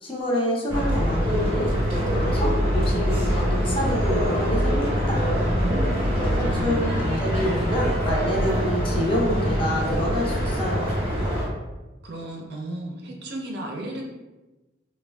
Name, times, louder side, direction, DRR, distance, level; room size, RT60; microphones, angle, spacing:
voice 1, 0.0-5.5 6.4-10.9, left 1 dB, 30° left, -3 dB, 0.6 m, -28 dB
sound 1, 0.7-11.5, equal, 30° right, 0.8 m, -24 dB
voice 2, 5.6-7.1 12.0-14.0, right 1 dB, 60° right, 0 dB, 0.5 m, -34 dB
3.4 x 2.2 x 2.2 m, 1.1 s
head